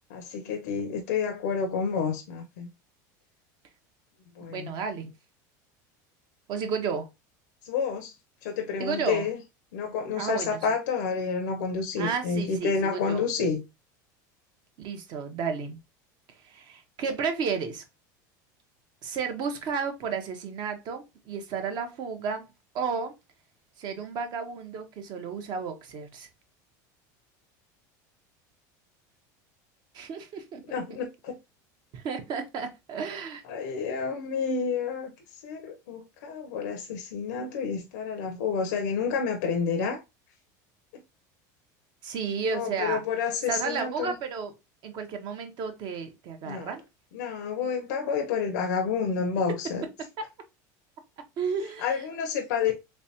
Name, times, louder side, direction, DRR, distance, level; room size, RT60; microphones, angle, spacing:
voice 1, 0.1-2.7 4.4-4.7 7.6-8.1 8.4-9.4 9.7-13.6 30.7-31.3 33.4-40.0 42.4-44.2 46.4-46.8 47.1-49.9 51.6-52.7, left 5 dB, 85° left, 0.7 m, -29 dB
voice 2, 4.5-5.1 6.5-7.1 8.8-9.3 10.2-10.6 12.0-13.3 14.8-15.8 16.4-17.8 19.0-22.5 22.7-23.1 23.8-26.3 29.9-30.8 31.9-33.4 42.0-43.0 43.5-44.5 44.8-46.8 50.2-50.3 51.4-51.9, right 5 dB, 50° right, 0.9 m, -32 dB
3.3 x 3.3 x 2.8 m
supercardioid pair, 130°, 10 cm